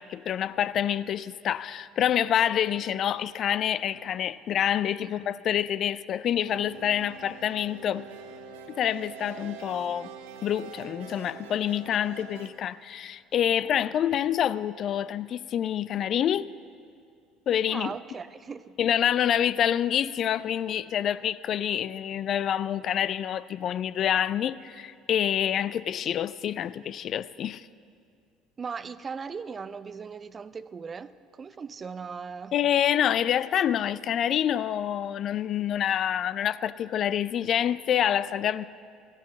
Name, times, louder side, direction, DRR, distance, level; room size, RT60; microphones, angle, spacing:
voice 1, 0.0-8.1 8.8-10.1 10.4-16.5 17.5-17.9 18.8-27.6 32.5-38.6, left 10 dB, 50° left, 0.3 m, -27 dB
sound 1, 6.4-12.5, right 6 dB, 75° right, 0.8 m, -44 dB
voice 2, 17.7-18.8 28.6-32.6, right 5 dB, 35° right, 0.5 m, -38 dB
14.0 x 9.9 x 7.2 m
hypercardioid pair, 60°, 0 cm